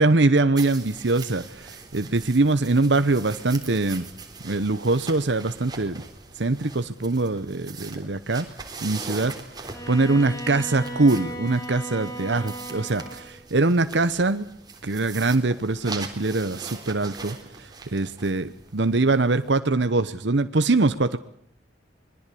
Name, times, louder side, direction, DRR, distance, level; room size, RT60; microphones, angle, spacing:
voice 1, 0.0-4.1 4.4-6.0 6.4-8.5 8.8-9.3 9.9-14.5 14.8-21.2, right 2 dB, 70° right, 10 dB, 1.0 m, -23 dB
sound 1, 0.6-19.5, right 4 dB, 20° right, 3.6 m, -42 dB
Bowed string instrument, 9.7-13.4, equal, 20° left, 3.3 m, -36 dB
25.5 x 21.0 x 8.5 m, 0.64 s
head